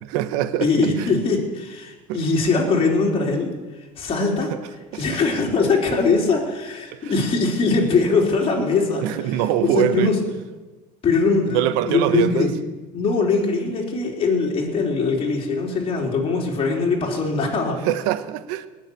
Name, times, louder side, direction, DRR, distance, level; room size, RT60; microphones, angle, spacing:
voice 1, 0.0-0.7 1.0-1.1 2.1-2.2 4.5-4.6 4.9-5.2 6.9-7.1 9.0-10.1 11.5-12.5 17.8-18.7, right 12 dB, 75° right, 1.0 m, -23 dB
voice 2, 0.6-3.5 4.0-4.5 4.9-9.1 9.3-9.4 9.7-10.2 11.0-11.6 11.9-12.5 12.9-17.8, left 4 dB, 30° left, 3.6 m, -21 dB
19.0 x 6.5 x 8.6 m
supercardioid pair, 125°, 18 cm